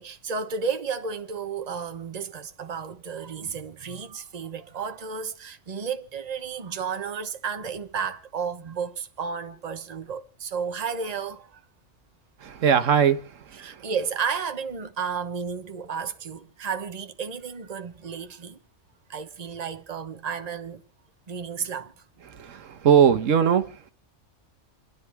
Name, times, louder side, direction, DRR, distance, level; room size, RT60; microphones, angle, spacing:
voice 1, 0.0-11.6 13.6-18.6 19.1-20.8 21.3-21.9, right 6 dB, 35° right, 1.1 m, -32 dB
voice 2, 12.4-13.8 22.3-23.9, right 8 dB, 85° right, 1.4 m, -21 dB
29.5 x 10.5 x 3.4 m
omnidirectional pair, 1.3 m